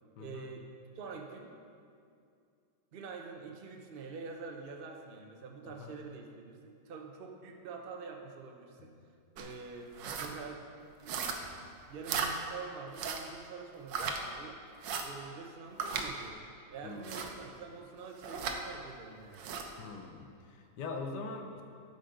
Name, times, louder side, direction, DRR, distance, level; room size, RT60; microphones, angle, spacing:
voice 1, 0.2-0.7 0.9-1.5 2.9-9.0 9.3-10.6 11.0-11.5 11.8-14.6 15.0-16.4 16.7-19.5, right 5 dB, 55° right, 2 dB, 0.6 m, -46 dB
voice 2, 5.6-5.9 16.8-17.2 19.8-21.6, left 4 dB, 70° left, 4 dB, 1.3 m, -42 dB
sound 1, 9.4-9.5 9.9-10.3 11.1-11.6 12.0-12.3 12.9-13.3 13.9-14.2 14.8-15.1 15.8-16.1 17.0-17.3 18.2-18.6 19.3-19.7, right 6 dB, 75° right, 1.5 m, -36 dB
11.5 x 5.6 x 5.1 m, 2.4 s
omnidirectional pair, 2.0 m